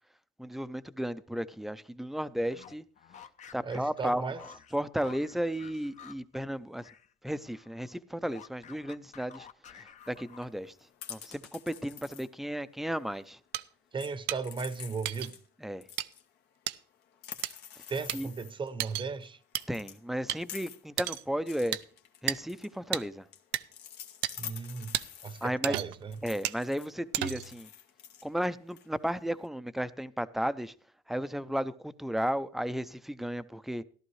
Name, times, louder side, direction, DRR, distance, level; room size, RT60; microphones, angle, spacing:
voice 1, 0.4-2.8 3.5-6.9 7.2-9.5 9.7-10.7 11.1-13.4 15.6-15.8 18.1-18.3 19.7-21.8 22.2-23.3 25.4-25.8 26.2-27.7 28.2-30.7 31.1-33.8, equal, ahead, 0.5 m, -34 dB
sound 1, 2.4-7.1 7.4-10.7, left 8 dB, 45° left, 0.7 m, -52 dB
voice 2, 3.6-4.4 13.9-15.3 17.9-19.4 24.4-24.9 25.2-26.1, right 4 dB, 30° right, 0.8 m, -36 dB
sound 2, 10.0-13.5 13.9-15.5 15.8-18.7 19.1-19.3 19.5-25.5 26.1-29.5, left 9 dB, 80° left, 1.2 m, -48 dB
sound 3, 13.5-13.6 14.3-14.4 15.0-15.3 16.0-16.1 16.7-16.8 17.4-17.5 18.1-18.2 18.8-19.1 19.5-19.6 20.3-20.4 21.0-21.2 21.7-21.8 22.3-22.4 22.9-23.0 23.5-23.6 24.2-24.3 24.9-25.0 25.6-26.0 26.4-26.6 27.1-27.5, right 14 dB, 90° right, 0.5 m, -32 dB
14.5 x 12.0 x 3.2 m
cardioid pair, 110°, 17 cm